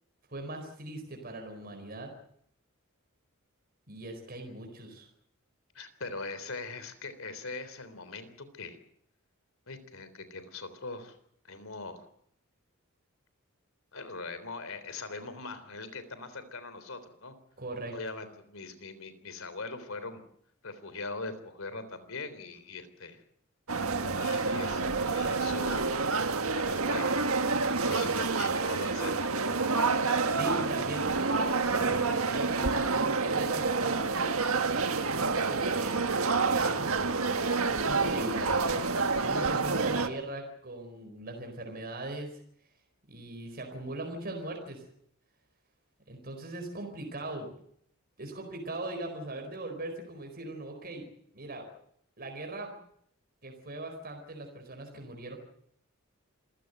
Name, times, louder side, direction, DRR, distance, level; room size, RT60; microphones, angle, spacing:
voice 1, 0.3-2.1 3.9-5.1 17.6-17.9 29.8-34.3 34.7-37.0 37.7-38.8 39.2-42.4 43.1-44.8 46.1-47.5 48.2-51.1 51.3-51.7 52.2-52.7 53.4-55.4, right 2 dB, 45° right, 3 dB, 4.5 m, -40 dB
voice 2, 5.8-8.8 9.7-11.2 11.4-12.0 13.9-17.3 17.9-20.2 20.6-23.2 24.2-25.9 26.5-27.2 27.9-29.6, left 3 dB, 70° left, 12 dB, 3.6 m, -41 dB
sound 1, 23.7-40.1, right 4 dB, 85° right, 1.7 m, -28 dB
27.0 x 16.0 x 8.0 m, 0.70 s
head